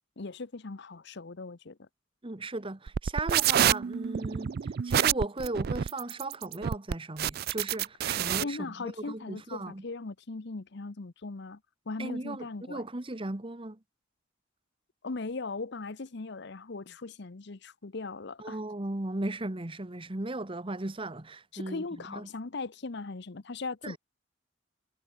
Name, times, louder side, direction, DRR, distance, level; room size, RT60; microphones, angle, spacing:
voice 1, 0.2-1.9 8.4-11.6 11.9-12.8 15.0-18.6 21.5-24.0, left 3 dB, 60° left, 0.9 m, -39 dB
voice 2, 2.2-9.8 12.0-13.8 18.4-22.3 23.8-24.0, right 2 dB, 25° right, 1.1 m, -37 dB
sound 1, 2.9-8.4, right 9 dB, 50° right, 0.4 m, -27 dB
head